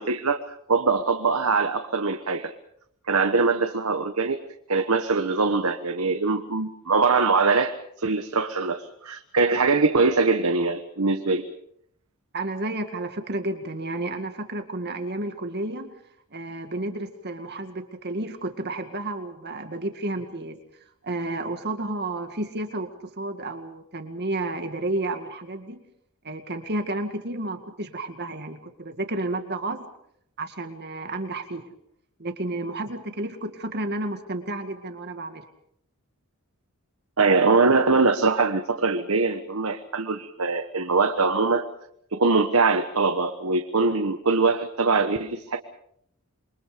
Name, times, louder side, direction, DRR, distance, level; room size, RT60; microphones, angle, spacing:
voice 1, 0.0-2.5 3.1-4.4 4.7-11.4 37.2-41.6 42.1-45.6, right 4 dB, 70° right, 6 dB, 1.3 m, -22 dB
voice 2, 12.3-16.0 16.3-20.6 21.0-25.8 26.2-29.8 30.4-31.6 32.2-35.5, right 2 dB, 50° right, 6 dB, 2.1 m, -31 dB
27.5 x 23.5 x 5.2 m, 0.71 s
head